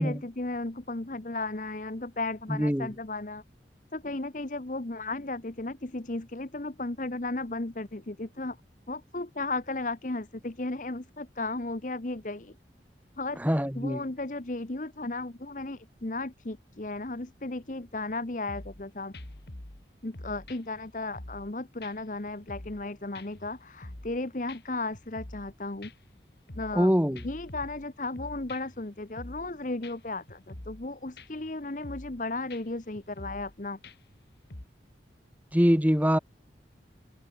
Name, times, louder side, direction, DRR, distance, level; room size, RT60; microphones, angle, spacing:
voice 1, 0.0-3.4 3.9-8.6 8.9-12.5 13.2-13.4 13.8-19.1 20.0-25.9 26.5-26.9 27.2-33.8, left 2 dB, 45° left, 1.1 m, -35 dB
voice 2, 2.5-2.9 13.4-14.0 26.7-27.2 35.5-36.2, equal, 10° right, 2.3 m, -24 dB
sound 1, 18.5-18.8 19.1-19.8 20.1-21.5 21.8-21.9 22.3-22.9 23.1-24.2 24.5-24.6 24.9-25.5 25.8-26.9 27.2-28.8 29.2-29.5 29.8-29.9 30.3-30.9 31.2-31.5 31.8-32.2 32.5-32.6 33.0-33.5 33.8-34.2 34.5-34.7, left 1 dB, 60° left, 2.4 m, -45 dB
head